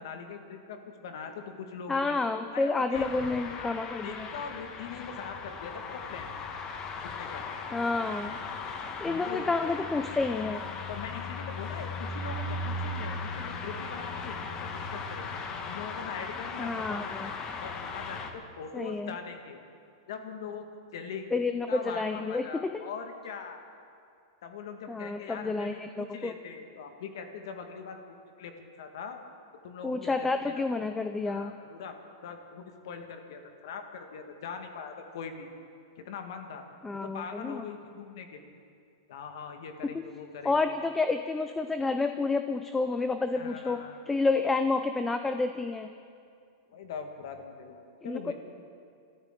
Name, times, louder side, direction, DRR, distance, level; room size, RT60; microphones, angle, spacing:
voice 1, 0.0-2.2 2.5-3.1 3.5-3.7 4.0-6.3 7.0-7.5 9.1-9.7 10.9-15.3 15.6-17.2 17.6-19.6 20.1-20.7 20.9-21.3 21.7-23.6 24.4-29.2 29.6-30.7 31.2-31.9 32.2-35.5 36.0-36.6 36.9-38.6 39.1-40.6 43.3-44.0 46.7-48.3, left 6 dB, 70° left, 5 dB, 1.7 m, -41 dB
voice 2, 1.9-4.3 7.7-8.4 9.0-10.6 16.6-17.3 18.7-19.1 21.3-22.8 24.9-26.3 29.8-31.5 36.8-37.6 39.9-40.0 40.4-43.8 44.1-45.9 48.0-48.3, left 3 dB, 10° left, 8 dB, 0.5 m, -29 dB
sound 1, 2.9-18.3, left 3 dB, 25° left, 1.2 m, -37 dB
28.0 x 13.5 x 3.8 m, 2.4 s
supercardioid pair, 150°, 2 cm